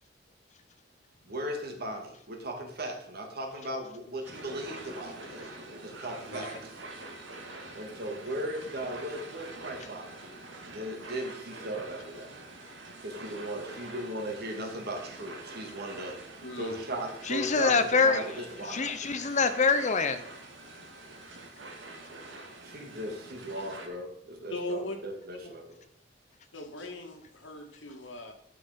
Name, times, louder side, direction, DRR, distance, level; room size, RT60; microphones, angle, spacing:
voice 1, 1.2-5.5 5.8-6.7 7.7-10.2 10.6-12.3 13.0-19.0 22.6-25.8, right 1 dB, 55° right, 2.3 m, -37 dB
sound 1, 4.2-23.9, right 2 dB, 80° right, 2.0 m, -46 dB
voice 2, 16.4-16.8 24.5-25.0 26.5-28.3, left 2 dB, 80° left, 2.1 m, -39 dB
voice 3, 17.3-18.2 18.7-20.2, left 4 dB, 40° left, 0.6 m, -25 dB
11.5 x 6.5 x 5.2 m
head